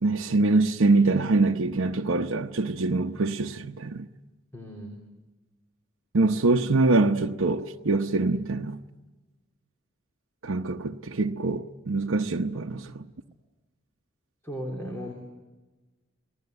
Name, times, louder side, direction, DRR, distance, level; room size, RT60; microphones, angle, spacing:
voice 1, 0.0-4.1 6.1-8.8 10.4-13.1, right 3 dB, 85° right, 0.8 m, -24 dB
voice 2, 4.5-5.0 14.4-15.1, equal, 10° left, 3.1 m, -36 dB
29.5 x 19.0 x 8.0 m
head